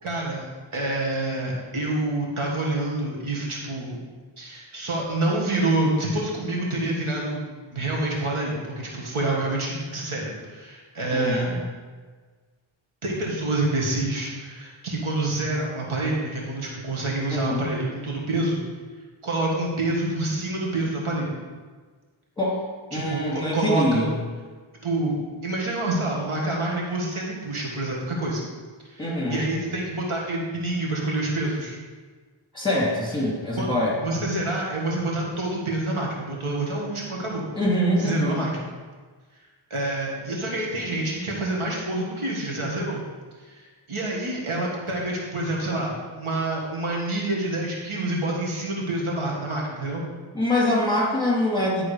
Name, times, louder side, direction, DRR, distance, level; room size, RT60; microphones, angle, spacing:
voice 1, 0.0-0.4 0.7-4.0 4.4-11.5 13.0-18.6 19.2-21.3 22.9-24.1 24.8-25.2 25.4-28.4 28.8-31.7 33.6-33.7 34.0-37.4 38.0-38.6 39.7-43.0 43.4-50.0, right 2 dB, 85° right, -3 dB, 1.7 m, -27 dB
voice 2, 11.1-11.5 17.3-17.7 22.4-22.6 22.9-24.1 29.0-29.4 32.5-34.0 37.5-38.4 50.3-51.8, left 1 dB, 10° left, -4 dB, 2.6 m, -24 dB
11.0 x 3.7 x 4.9 m, 1.4 s
wide cardioid pair, 85°, 49 cm